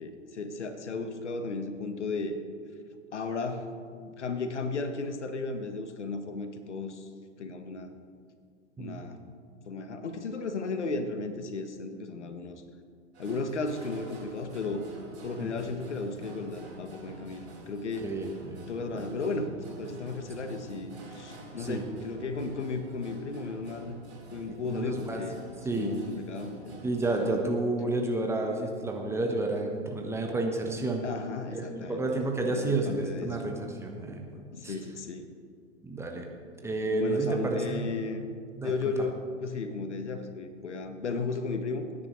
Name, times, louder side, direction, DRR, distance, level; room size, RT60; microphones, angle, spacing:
voice 1, 0.0-2.4 3.1-7.1 7.4-8.0 8.8-9.2 9.7-12.6 13.2-14.8 15.2-18.1 18.7-24.0 24.3-25.4 25.7-26.8 31.0-33.4 34.5-35.3 36.8-38.3 38.6-41.8, left 3 dB, 70° left, 8 dB, 1.2 m, -35 dB
sound 1, 13.1-27.3, right 2 dB, 65° right, 3.6 m, -48 dB
voice 2, 18.0-18.7 18.9-19.1 21.6-21.8 24.5-25.2 25.6-25.9 26.8-31.0 31.5-34.7 35.8-36.3 36.6-37.8 38.6-38.7, right 2 dB, 5° right, 1 dB, 1.0 m, -30 dB
20.0 x 9.9 x 3.1 m, 2.3 s
figure-of-eight pair, 110°, 36 cm